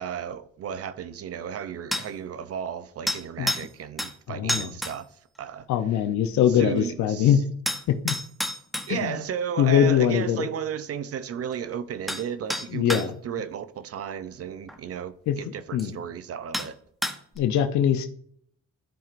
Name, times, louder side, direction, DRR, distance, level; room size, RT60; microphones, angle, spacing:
voice 1, 0.0-5.7 6.5-7.4 8.8-16.8, right 8 dB, 50° right, 0.6 m, -34 dB
sound 1, 1.9-2.1 3.1-3.7 4.0-4.1 4.5-5.0 7.7-8.9 11.5-11.6 12.1-12.2 12.5-13.1 14.7-14.8 15.8-15.9 16.5-16.7 17.0-17.4, left 1 dB, ahead, 0.9 m, -29 dB
voice 2, 4.3-4.7 5.7-7.4 7.9-8.1 8.9-9.2 9.6-10.5 12.7-13.1 15.3-15.4 15.7-16.0 17.4-18.1, left 9 dB, 70° left, 0.7 m, -22 dB
13.0 x 4.4 x 2.5 m
cardioid pair, 90°, 30 cm